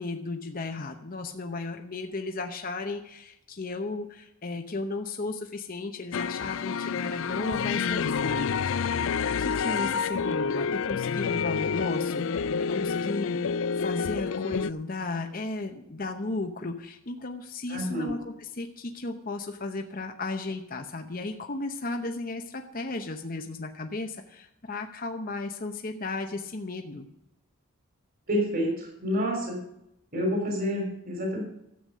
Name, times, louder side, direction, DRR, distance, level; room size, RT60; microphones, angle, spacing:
voice 1, 0.0-9.1 9.4-13.4 13.8-27.1, left 3 dB, 40° left, 5 dB, 0.8 m, -35 dB
sound 1, 6.1-14.7, left 6 dB, 60° left, 0.4 m, -28 dB
voice 2, 17.7-18.2 28.3-29.6 30.1-31.4, equal, 40° right, 1 dB, 3.4 m, -28 dB
12.5 x 8.0 x 6.6 m, 0.81 s
head